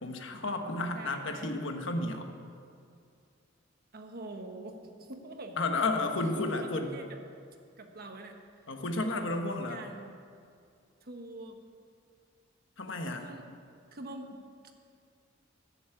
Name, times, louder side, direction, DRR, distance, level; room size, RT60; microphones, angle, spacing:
voice 1, 0.0-2.3 5.6-7.0 8.7-9.8 12.8-13.3, left 2 dB, 70° left, 5 dB, 1.3 m, -32 dB
voice 2, 0.9-1.5 3.9-5.6 6.3-7.2 7.8-8.4 9.0-9.2 9.7-10.1 11.0-11.6 13.2-13.5 13.9-14.4, right 2 dB, 50° right, 4 dB, 1.3 m, -44 dB
14.5 x 7.2 x 8.3 m, 2.3 s
head